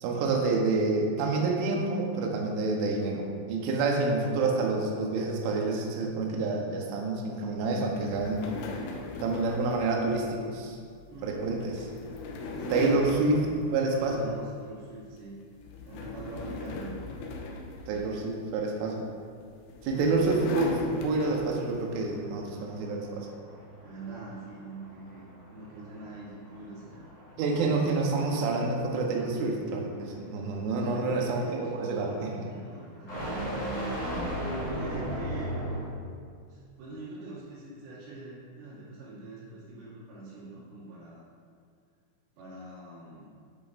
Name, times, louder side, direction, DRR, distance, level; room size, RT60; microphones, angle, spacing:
voice 1, 0.0-8.5 9.2-10.8 11.2-11.9 12.7-13.4 13.7-14.3 17.9-19.1 19.8-23.3 27.4-32.5, right 3 dB, 80° right, 0 dB, 3.4 m, -28 dB
sound 1, 8.0-14.5 14.9-15.2 15.6-18.6 19.4-21.9, left 2 dB, 80° left, 2.6 m, -39 dB
voice 2, 11.1-11.5 12.5-15.4 15.9-17.0 17.8-18.1 23.8-27.1 30.8-33.5 34.6-35.6 36.5-41.2 42.4-43.3, right 2 dB, 55° right, -9 dB, 3.7 m, -44 dB
sound 2, 21.6-36.1, equal, 40° left, 1.3 m, -38 dB
10.5 x 7.5 x 2.6 m, 2.1 s
omnidirectional pair, 5.6 m